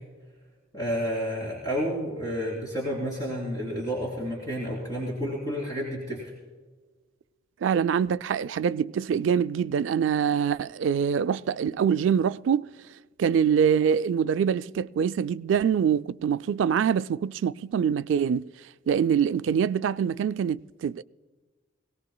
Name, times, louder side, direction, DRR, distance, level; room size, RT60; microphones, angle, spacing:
voice 1, 0.7-6.3, equal, 20° left, 3.3 m, -30 dB
voice 2, 7.6-12.7 13.2-18.5 18.9-21.0, right 7 dB, 70° right, 0.3 m, -24 dB
21.0 x 18.0 x 2.2 m
head